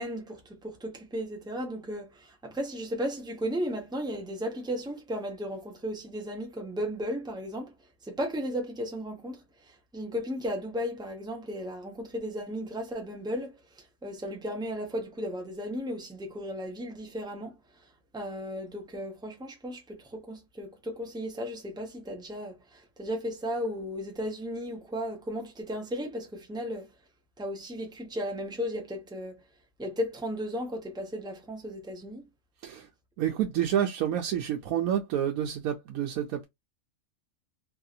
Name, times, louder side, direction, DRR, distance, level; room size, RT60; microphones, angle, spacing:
voice 1, 0.0-7.7 8.0-17.5 18.1-26.9 27.4-29.4 29.8-32.2, equal, 5° right, 0.7 m, -35 dB
voice 2, 33.2-36.5, right 10 dB, 85° right, 1.1 m, -29 dB
3.1 x 2.7 x 2.4 m
omnidirectional pair, 1.5 m